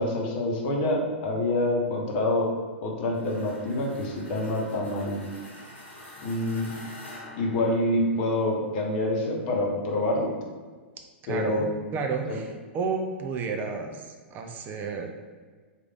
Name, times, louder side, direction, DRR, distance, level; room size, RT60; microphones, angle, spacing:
voice 1, 0.0-2.5 2.8-5.2 6.2-6.7 7.4-10.3 11.3-11.6 12.3-12.4, left 1 dB, 50° left, 0 dB, 0.8 m, -26 dB
sound 1, 3.1-8.4, left 1 dB, 80° left, 0.9 m, -46 dB
voice 2, 11.2-15.1, right 4 dB, 30° right, 4 dB, 0.4 m, -31 dB
3.1 x 2.4 x 3.5 m, 1.4 s
hypercardioid pair, 105°, 6 cm